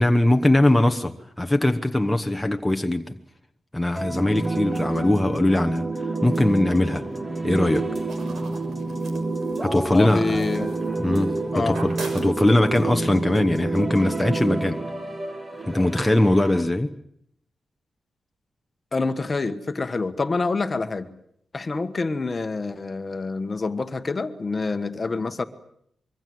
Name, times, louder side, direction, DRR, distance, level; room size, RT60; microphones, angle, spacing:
voice 1, 0.0-3.2 3.7-5.9 6.2-7.0 7.4-7.9 9.6-10.4 11.0-14.8 15.7-16.9, left 1 dB, 5° left, 4 dB, 1.1 m, -21 dB
sound 1, 4.0-16.6, right 2 dB, 20° right, 2.1 m, -28 dB
sound 2, 8.1-11.4 11.6-12.8, right 3 dB, 75° right, 6.5 m, -41 dB
voice 2, 9.7-10.7 11.5-11.8 18.9-21.1 21.5-25.4, left 3 dB, 30° left, 10 dB, 1.4 m, -27 dB
25.5 x 23.5 x 7.8 m, 0.72 s
wide cardioid pair, 150°, 0 cm